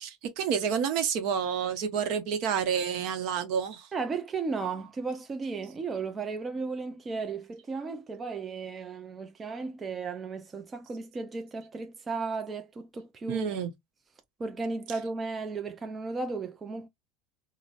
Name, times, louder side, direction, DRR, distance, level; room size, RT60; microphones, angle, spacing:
voice 1, 0.0-3.9 13.3-13.7, right 7 dB, 60° right, 0.8 m, -29 dB
voice 2, 3.9-13.6 14.4-16.9, right 4 dB, 20° right, 0.4 m, -35 dB
3.8 x 2.0 x 2.4 m
supercardioid pair, 125°, 0 cm